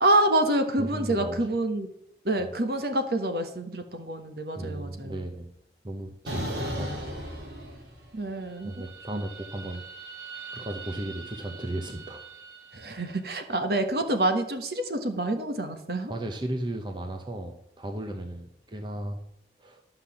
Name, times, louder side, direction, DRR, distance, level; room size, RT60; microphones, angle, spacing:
voice 1, 0.0-1.9 2.2-5.2 6.3-6.6 8.1-9.2 12.7-16.1, right 1 dB, 60° right, 7 dB, 1.4 m, -27 dB
voice 2, 0.8-1.4 4.5-5.5 5.8-7.1 8.6-9.8 10.5-12.2 16.1-19.2 19.6-19.8, right 1 dB, 25° right, 4 dB, 0.9 m, -35 dB
sound 1, 6.3-8.2 8.5-12.8, right 1 dB, 80° right, 3.5 m, -38 dB
12.0 x 5.8 x 7.1 m, 0.79 s
head